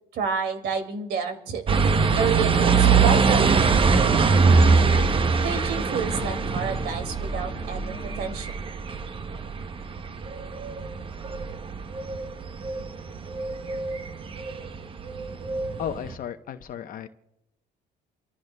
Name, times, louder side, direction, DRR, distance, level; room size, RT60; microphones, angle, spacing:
voice 1, 0.1-1.7 2.1-4.6 5.4-8.5, right 5 dB, 70° right, 6 dB, 2.3 m, -30 dB
sound 1, 1.7-16.1, right 5 dB, 30° right, 0.7 m, -23 dB
sound 2, 3.2-8.4, left 3 dB, 20° left, 1.2 m, -40 dB
voice 2, 15.8-17.1, left 9 dB, 55° left, 7 dB, 0.8 m, -34 dB
28.5 x 14.5 x 2.2 m, 0.84 s
cardioid pair, 110°, 17 cm